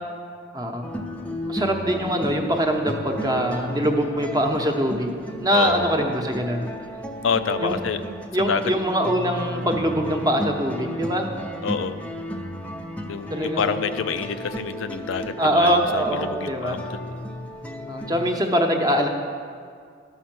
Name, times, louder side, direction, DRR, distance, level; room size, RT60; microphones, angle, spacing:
voice 1, 0.5-0.9 1.4-6.7 7.5-7.8 8.3-11.3 13.3-13.8 15.4-16.8 17.9-19.1, equal, 20° right, 3 dB, 0.9 m, -23 dB
sound 1, 0.8-18.4, equal, 5° left, 0.5 m, -33 dB
voice 2, 5.5-5.8 7.2-8.0 8.5-8.6 11.6-12.0 13.1-17.1, left 6 dB, 80° left, 10 dB, 0.5 m, -27 dB
12.5 x 5.7 x 6.1 m, 2.2 s
head